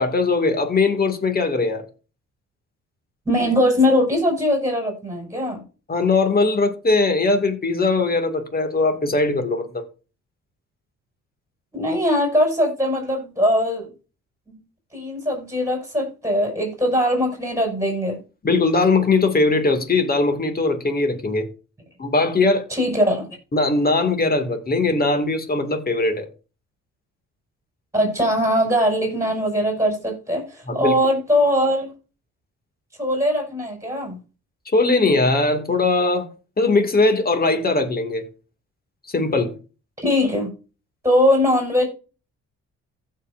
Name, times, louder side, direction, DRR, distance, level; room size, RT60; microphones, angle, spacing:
voice 1, 0.0-1.8 5.9-9.8 18.4-21.5 22.0-22.6 23.5-26.3 30.7-31.0 34.7-36.3 36.6-38.2 39.1-39.5, left 3 dB, 30° left, 2.2 m, -20 dB
voice 2, 3.3-5.6 11.7-13.9 14.5-14.6 14.9-18.2 22.7-23.3 27.9-31.9 33.0-34.2 40.0-40.5 41.0-41.9, equal, 10° right, 5.7 m, -21 dB
15.5 x 5.7 x 2.6 m
cardioid pair, 90°, 30 cm